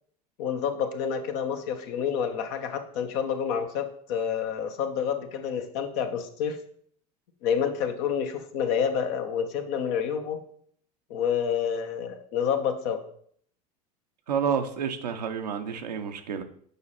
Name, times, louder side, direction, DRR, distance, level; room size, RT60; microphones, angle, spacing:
voice 1, 0.4-6.6 7.4-10.4 11.1-13.0, left 7 dB, 65° left, 1.1 m, -28 dB
voice 2, 14.3-16.4, right 7 dB, 90° right, 0.8 m, -29 dB
6.9 x 5.1 x 4.2 m
hypercardioid pair, 80°, 20 cm